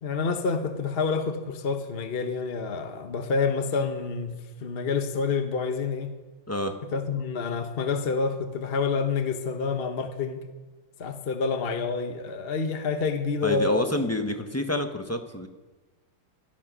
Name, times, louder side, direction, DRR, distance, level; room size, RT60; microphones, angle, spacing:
voice 1, 0.0-4.3 4.6-6.1 6.9-10.4 11.0-13.9, left 5 dB, 40° left, 7 dB, 1.1 m, -28 dB
voice 2, 13.4-15.5, left 1 dB, 10° left, 6 dB, 0.9 m, -28 dB
17.5 x 13.0 x 6.2 m, 1.2 s
omnidirectional pair, 2.0 m